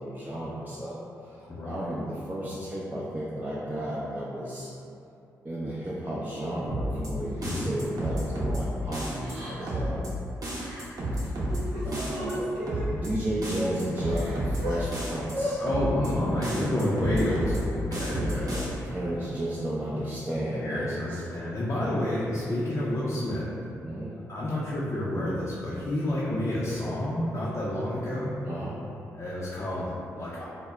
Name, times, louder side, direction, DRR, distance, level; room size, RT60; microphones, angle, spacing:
voice 1, 0.0-4.7 5.4-10.2 11.2-11.3 11.8-15.6 18.1-21.2 23.8-24.1 28.4-28.8, right 1 dB, 25° right, -7 dB, 0.4 m, -33 dB
voice 2, 1.5-1.9 7.4-7.7 15.6-18.6 20.5-23.5 24.3-28.3 29.2-30.4, left 1 dB, 40° left, -8 dB, 0.5 m, -29 dB
sound 1, 6.7-7.1 7.4-8.6 8.9-9.3 9.7-10.1 10.4-11.6 11.9-12.3 12.7-13.1 13.4-14.6 14.9-15.3 15.7-16.1 16.4-17.6 17.9-18.7, right 1 dB, 55° right, 0.7 m, -31 dB
Crying sobbing, 8.0-8.2 9.2-9.9 10.5-10.8 11.2-12.9 13.5-13.6 13.9-14.8 15.3-15.6 16.9-17.4, equal, 85° right, 0.5 m, -36 dB
2.0 x 2.0 x 3.6 m, 2.7 s
hypercardioid pair, 40°, 8 cm